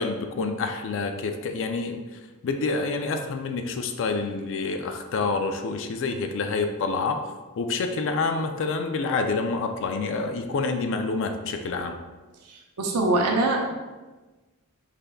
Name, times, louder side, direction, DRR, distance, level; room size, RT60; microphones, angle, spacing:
voice 1, 0.0-12.0, left 4 dB, 60° left, 6 dB, 0.4 m, -28 dB
voice 2, 12.5-13.7, right 2 dB, 80° right, 1 dB, 0.6 m, -24 dB
5.0 x 3.3 x 2.3 m, 1.2 s
head